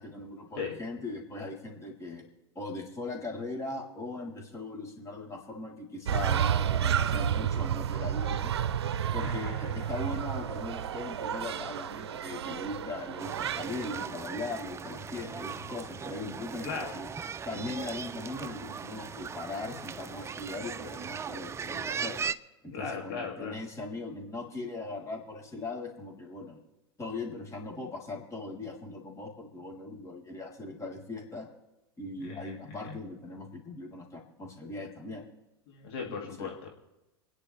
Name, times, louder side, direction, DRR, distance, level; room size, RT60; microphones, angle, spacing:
voice 1, 0.0-2.2 2.6-8.5 9.1-17.1 17.5-22.2 22.6-26.6 27.0-31.5 32.0-35.2 36.2-36.5, left 2 dB, 20° left, 0 dB, 3.6 m, -39 dB
sound 1, 6.1-14.1, right 9 dB, 80° right, 0.5 m, -31 dB
voice 2, 9.2-9.8 16.6-16.9 22.7-23.5 32.2-32.9 35.7-36.7, left 5 dB, 65° left, 0 dB, 2.5 m, -38 dB
sound 2, 13.2-22.3, right 6 dB, 20° right, 0.6 m, -38 dB
28.0 x 10.0 x 3.3 m, 1.0 s
hypercardioid pair, 90°, 14 cm